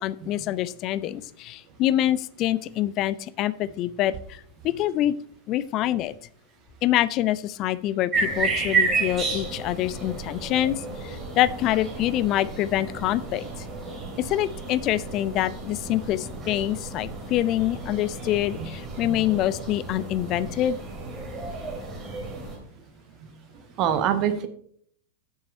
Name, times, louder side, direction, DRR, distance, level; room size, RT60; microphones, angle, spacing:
voice 1, 0.0-5.1 5.5-6.1 6.8-13.5 14.2-20.8, left 13 dB, 35° left, 17 dB, 0.4 m, -26 dB
sound 1, 8.1-22.6, right 3 dB, 20° right, 2.8 m, -32 dB
voice 2, 23.8-24.5, right 9 dB, 40° right, 9 dB, 1.0 m, -25 dB
7.0 x 6.3 x 5.3 m, 0.64 s
figure-of-eight pair, 90°, 0 cm